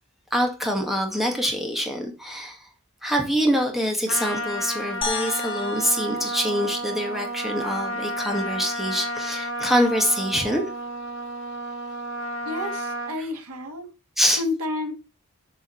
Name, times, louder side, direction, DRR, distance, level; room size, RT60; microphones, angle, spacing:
voice 1, 0.3-2.7 3.0-10.6 14.2-14.4, equal, ahead, 2.0 m, -25 dB
Trumpet, 4.1-13.2, equal, 60° left, 1.5 m, -31 dB
sound 1, 5.0-7.4, left 4 dB, 25° left, 2.3 m, -34 dB
voice 2, 12.4-13.9 14.4-14.9, left 2 dB, 90° right, 2.2 m, -30 dB
7.5 x 5.5 x 6.4 m
head